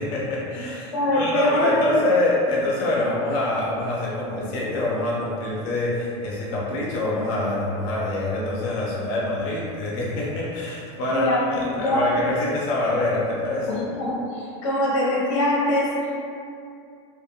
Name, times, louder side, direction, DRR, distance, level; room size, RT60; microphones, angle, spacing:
voice 1, 0.0-13.8, left 2 dB, 40° left, -5 dB, 0.4 m, -25 dB
voice 2, 0.9-2.0 11.1-12.1 13.7-16.0, left 1 dB, 90° left, -4 dB, 0.7 m, -23 dB
2.3 x 2.0 x 2.7 m, 2.5 s
supercardioid pair, 180°, 15 cm